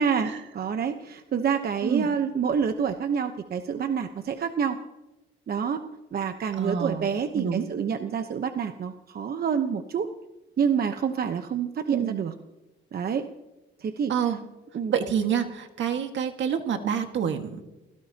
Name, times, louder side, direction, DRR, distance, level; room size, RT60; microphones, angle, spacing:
voice 1, 0.0-4.8 5.5-10.1 10.6-12.3 12.9-13.3 13.8-14.1 14.7-14.9, right 7 dB, 50° right, 7 dB, 1.0 m, -27 dB
voice 2, 6.6-7.1 7.3-7.7 11.9-12.2 14.1-14.4 14.9-17.6, right 8 dB, 70° right, 5 dB, 1.8 m, -27 dB
29.5 x 17.0 x 2.9 m, 1.1 s
cardioid pair, 90°, 20 cm